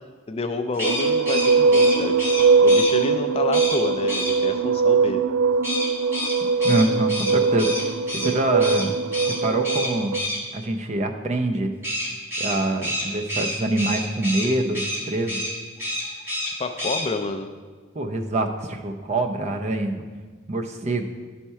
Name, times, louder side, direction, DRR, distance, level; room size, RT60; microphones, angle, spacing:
voice 1, 0.3-2.1 2.6-5.2 16.4-17.5, left 3 dB, 30° left, 7 dB, 0.3 m, -29 dB
sound 1, 0.7-2.9 3.5-3.8 4.1-4.3 5.6-8.3 8.6-8.8 9.1-9.4 9.6-10.4 11.8-14.5 14.7-15.0 15.3-15.5 15.8-16.5 16.8-17.0, left 1 dB, 10° right, 1.9 m, -28 dB
sound 2, 0.8-10.2, right 4 dB, 90° right, 0.3 m, -21 dB
voice 2, 6.6-9.0 9.4-10.2 10.5-11.7 12.4-15.4 17.9-20.0 20.5-21.0, right 2 dB, 35° right, 4 dB, 0.5 m, -25 dB
10.5 x 4.3 x 4.6 m, 1.4 s
head